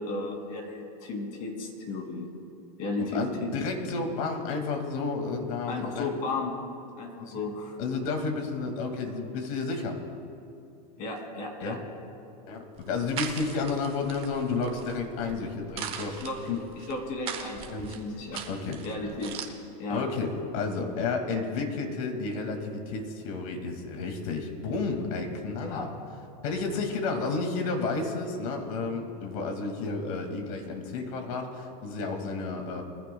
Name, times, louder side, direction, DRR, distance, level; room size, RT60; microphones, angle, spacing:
voice 1, 0.0-2.3 2.8-3.5 5.7-6.6 7.0-7.8 11.0-11.8 16.2-16.4 16.8-18.4 18.8-19.4 19.8-20.1 25.6-25.8, left 2 dB, 40° left, 2 dB, 2.6 m, -34 dB
voice 2, 3.0-6.2 7.2-7.3 7.8-10.0 11.6-11.8 12.5-16.6 17.7-17.9 18.5-18.8 19.9-25.9 26.4-32.8, left 4 dB, 60° left, 4 dB, 2.2 m, -31 dB
sound 1, 12.8-19.5, right 7 dB, 25° right, 1.2 m, -40 dB
22.5 x 15.5 x 2.3 m, 2.7 s
supercardioid pair, 160°, 21 cm